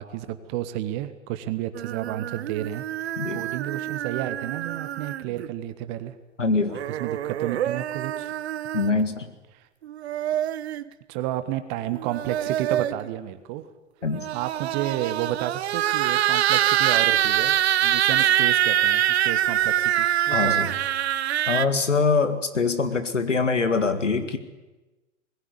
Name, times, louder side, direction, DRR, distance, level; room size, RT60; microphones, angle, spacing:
voice 1, 0.0-2.8 3.3-6.1 7.0-8.3 11.1-13.7 14.3-20.8, right 13 dB, 40° right, 11 dB, 1.4 m, -31 dB
sound 1, 1.7-5.5 6.7-9.0 9.8-10.8 11.9-13.1 14.1-21.6, right 12 dB, 60° right, 0.9 m, -25 dB
voice 2, 6.4-6.8 8.7-9.3 14.0-14.3 20.3-20.7 21.5-24.4, left 4 dB, 85° left, 10 dB, 2.0 m, -23 dB
20.5 x 16.0 x 9.6 m, 1.1 s
figure-of-eight pair, 105°, 36 cm